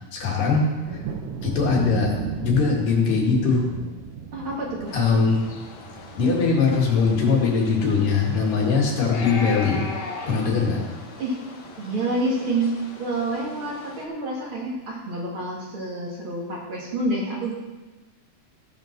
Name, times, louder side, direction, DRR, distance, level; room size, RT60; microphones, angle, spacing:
voice 1, 0.1-1.0 1.4-2.2 2.4-3.7 4.9-5.4 6.2-9.9 10.3-10.8, left 4 dB, 90° left, -2 dB, 3.8 m, -21 dB
Thunder, 0.8-10.3 10.5-11.2 11.7-11.8 12.1-12.4, right 7 dB, 90° right, 2.7 m, -37 dB
voice 2, 4.3-5.0 11.2-11.4 11.8-17.5, right 2 dB, 45° right, -3 dB, 2.7 m, -28 dB
sound 1, 4.9-14.0, left 4 dB, 70° left, 1.0 m, -39 dB
16.5 x 5.7 x 6.0 m, 1.2 s
omnidirectional pair, 3.7 m